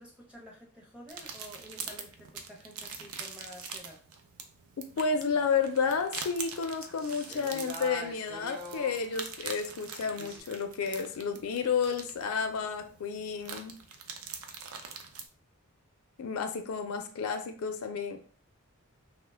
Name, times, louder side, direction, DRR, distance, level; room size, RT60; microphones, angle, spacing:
voice 1, 0.0-4.0, equal, 5° right, -2 dB, 0.6 m, -50 dB
sound 1, 1.1-15.3, right 6 dB, 75° right, 0.4 m, -44 dB
voice 2, 4.8-13.8 16.2-18.2, left 5 dB, 75° left, 7 dB, 0.4 m, -31 dB
sound 2, 5.3-10.4, right 1 dB, 45° right, 0.8 m, -46 dB
2.8 x 2.1 x 3.3 m, 0.43 s
head